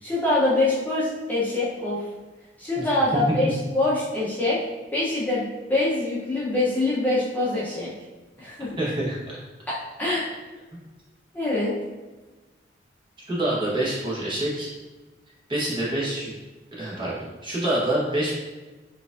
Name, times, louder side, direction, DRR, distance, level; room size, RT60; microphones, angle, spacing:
voice 1, 0.0-2.0 2.6-4.6 4.9-7.9 8.4-8.7 10.0-10.4 11.3-11.7, left 2 dB, 10° left, -9 dB, 0.7 m, -24 dB
voice 2, 8.8-9.4 13.3-14.7 15.5-16.3 16.8-17.2 17.4-18.4, right 1 dB, 25° right, -7 dB, 1.1 m, -26 dB
4.5 x 2.5 x 2.5 m, 1.2 s
head